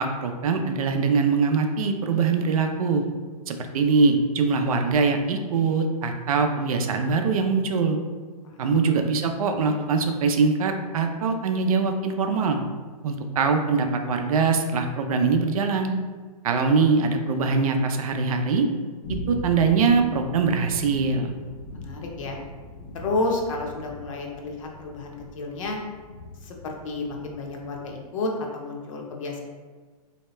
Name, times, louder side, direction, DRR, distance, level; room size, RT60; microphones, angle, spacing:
voice 1, 0.0-3.0 3.5-8.0 8.6-12.6 13.0-15.9 16.4-18.7 19.3-21.3, right 4 dB, 65° right, 5 dB, 0.5 m, -22 dB
sound 1, 19.0-28.0, left 2 dB, 25° left, 0.4 m, -40 dB
voice 2, 21.7-22.4 22.9-25.8 26.4-29.4, left 2 dB, 55° left, 1 dB, 0.8 m, -31 dB
3.2 x 2.7 x 3.1 m, 1.4 s
hypercardioid pair, 150°, 20 cm